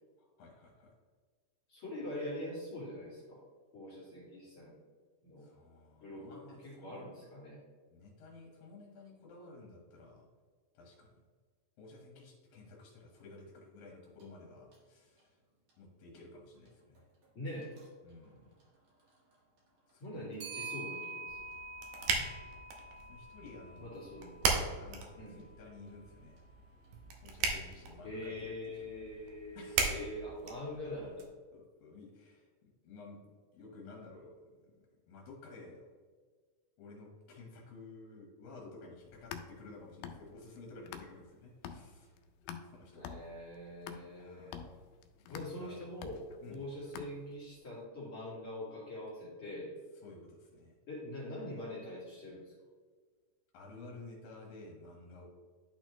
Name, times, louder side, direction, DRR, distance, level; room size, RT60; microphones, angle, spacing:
voice 1, 0.2-0.9 5.4-7.1 7.9-10.3 10.7-11.1 11.8-15.4 15.8-17.1 18.0-18.5 19.9-20.3 21.9-22.3 23.1-23.9 24.8-26.4 27.2-28.9 29.5-29.9 31.5-32.5 32.8-34.8 35.1-36.0 36.8-42.1 42.4-43.1 44.2-44.9 45.2-45.9 46.4-46.7 50.0-50.7 53.5-55.3, left 3 dB, 70° left, -2 dB, 2.8 m, -53 dB
voice 2, 1.7-3.4 3.7-4.7 5.2-5.5 6.0-7.6 17.3-17.7 20.0-21.4 23.8-24.4 25.2-25.4 28.0-31.3 42.9-44.6 45.3-49.7 50.9-52.5, left 1 dB, 45° left, -8 dB, 2.3 m, -43 dB
Clock, 14.2-14.3 14.7-14.8 17.6-17.8 20.4-24.6, right 3 dB, 55° right, 2.6 m, -46 dB
sound 1, 21.3-31.2, right 5 dB, 75° right, 1.8 m, -38 dB
sound 2, 39.0-41.3 41.7-47.6, left 7 dB, 90° left, 2.4 m, -48 dB
11.0 x 4.2 x 3.0 m, 1.5 s
omnidirectional pair, 4.2 m